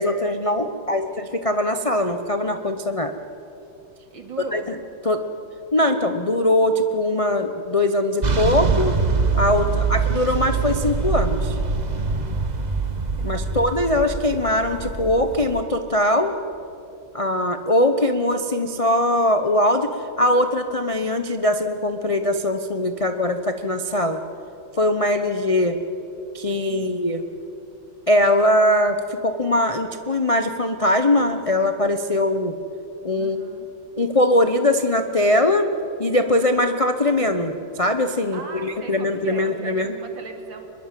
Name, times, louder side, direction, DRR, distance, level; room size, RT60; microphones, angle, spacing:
voice 1, 0.0-3.1 4.5-4.6 5.0-5.2 5.7-8.9 9.3-11.6 13.2-16.3 17.1-24.2 24.8-25.8 26.3-27.2 28.1-32.5 33.0-33.4 34.0-35.7 36.0-39.9, left 1 dB, 35° left, 7 dB, 0.5 m, -21 dB
voice 2, 0.7-1.1 4.1-4.7 9.6-10.0 13.2-13.7 26.7-27.0 33.2-33.7 38.3-40.7, right 4 dB, 75° right, 4 dB, 3.1 m, -40 dB
sound 1, 8.2-15.6, right 5 dB, 30° right, 0.9 m, -24 dB
24.0 x 21.5 x 7.5 m, 2.8 s
omnidirectional pair, 2.1 m